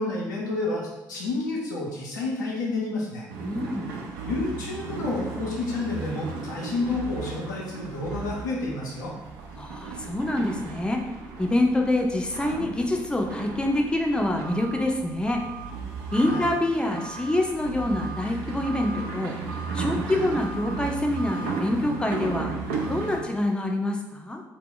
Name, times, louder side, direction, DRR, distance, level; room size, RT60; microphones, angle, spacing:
voice 1, 0.0-3.2 4.2-9.1 16.3-16.5, left 2 dB, 85° left, -4 dB, 0.5 m, -30 dB
sound 1, 3.3-23.2, right 4 dB, 75° right, 0.3 m, -35 dB
voice 2, 3.4-3.9 9.6-11.0 11.4-15.4 16.1-19.4 19.7-22.5 22.9-24.4, left 1 dB, 10° left, 2 dB, 0.4 m, -26 dB
2.1 x 2.0 x 3.7 m, 1.0 s
figure-of-eight pair, 45°, 10 cm